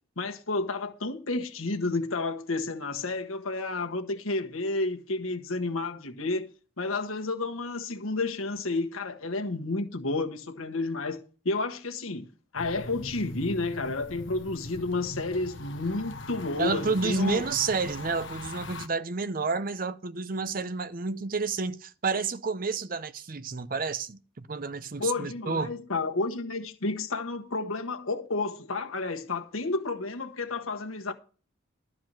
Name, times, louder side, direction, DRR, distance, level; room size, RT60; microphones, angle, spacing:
voice 1, 0.2-6.5 6.8-11.2 11.4-12.3 12.5-17.4 25.0-31.1, left 3 dB, 85° left, 1.5 m, -31 dB
sound 1, 12.6-18.9, left 2 dB, 60° left, 1.1 m, -41 dB
voice 2, 16.6-25.7, right 4 dB, 45° right, 0.6 m, -30 dB
12.5 x 4.8 x 7.6 m
head